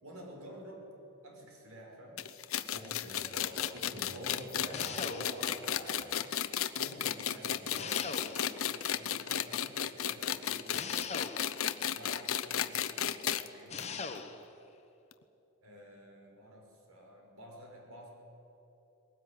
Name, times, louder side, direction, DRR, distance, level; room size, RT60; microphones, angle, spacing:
voice 1, 0.0-0.9 1.2-2.2 6.7-11.1 11.9-14.2 15.6-18.1, equal, 75° right, 0 dB, 5.5 m, -51 dB
sound 1, 2.2-13.5 13.8-13.9 14.1-14.2 15.1-15.2, left 10 dB, 70° left, 0.8 m, -34 dB
voice 2, 2.7-6.2, equal, 60° right, -5 dB, 4.5 m, -45 dB
sound 2, 4.7-5.6 7.7-8.7 10.7-11.7 13.7-14.5, left 5 dB, 30° left, 1.2 m, -41 dB
20.5 x 18.0 x 9.7 m, 3.0 s
head